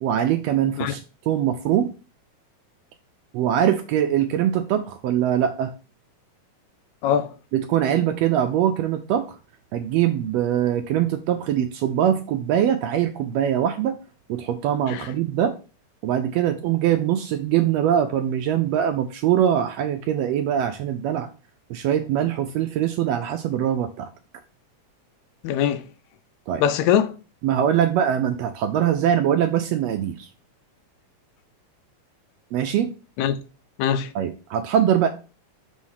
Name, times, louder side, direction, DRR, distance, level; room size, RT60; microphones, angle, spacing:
voice 1, 0.0-1.0 1.2-1.9 3.3-5.7 7.5-9.4 9.7-14.0 14.3-15.5 16.0-21.3 21.7-24.1 26.5-26.6 27.4-30.3 32.5-32.9 34.1-35.1, right 10 dB, 80° right, 1.5 m, -22 dB
voice 2, 7.0-7.3 14.9-15.1 25.4-25.8 26.6-27.2 33.2-33.4 33.8-34.1, left 9 dB, 80° left, 1.8 m, -22 dB
6.3 x 3.1 x 5.5 m
omnidirectional pair, 3.3 m